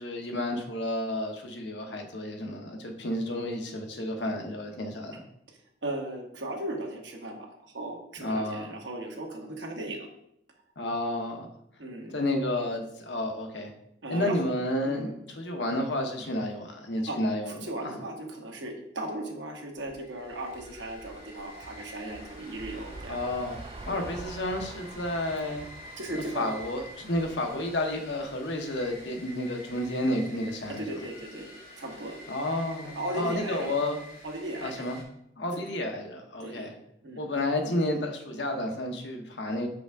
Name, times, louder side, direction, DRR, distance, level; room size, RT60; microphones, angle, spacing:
voice 1, 0.0-5.2 8.2-8.7 10.8-11.5 12.1-13.7 14.1-17.5 17.8-18.0 23.1-23.6 23.8-25.6 26.3-30.9 32.3-34.0 34.6-35.0 35.4-36.7 37.2-39.7, left 1 dB, 70° left, 3 dB, 0.9 m, -31 dB
voice 2, 5.8-10.1 11.8-12.1 14.0-14.4 14.8-15.1 17.1-17.2 17.5-23.2 23.9-24.0 26.0-26.5 30.7-31.5 31.8-32.2 33.0-33.7 34.2-34.8 36.4-36.7 37.0-37.2, right 1 dB, 80° right, 1 dB, 1.2 m, -37 dB
sound 1, 19.8-29.0, right 3 dB, 30° right, 0.4 m, -47 dB
sound 2, 19.9-35.0, left 1 dB, 55° left, 1.9 m, -48 dB
6.0 x 5.1 x 3.5 m, 0.77 s
head